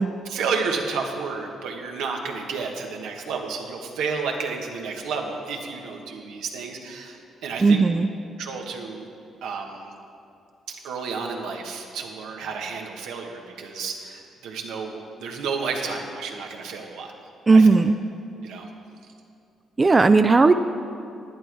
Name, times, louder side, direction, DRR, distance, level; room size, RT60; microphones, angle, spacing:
voice 1, 0.2-7.8 8.4-9.1 9.4-9.9 10.7-17.1 17.5-17.7 18.4-18.7, right 5 dB, 85° right, 2 dB, 1.3 m, -31 dB
voice 2, 7.6-8.1 17.5-18.0 19.8-20.5, right 3 dB, 25° right, 10 dB, 0.3 m, -16 dB
11.0 x 9.9 x 4.6 m, 2.5 s
cardioid pair, 90°, 0 cm